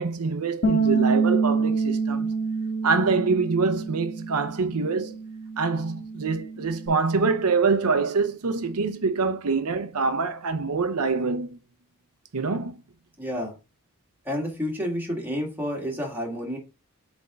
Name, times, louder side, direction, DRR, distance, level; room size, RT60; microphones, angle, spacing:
voice 1, 0.0-2.4 2.8-5.2 5.6-11.6 12.3-12.8, right 4 dB, 85° right, 0.7 m, -25 dB
Bass guitar, 0.6-6.9, right 4 dB, 50° left, 1.7 m, -27 dB
voice 2, 13.2-13.6 14.2-16.6, equal, 10° right, 1.9 m, -30 dB
7.8 x 3.5 x 3.7 m
head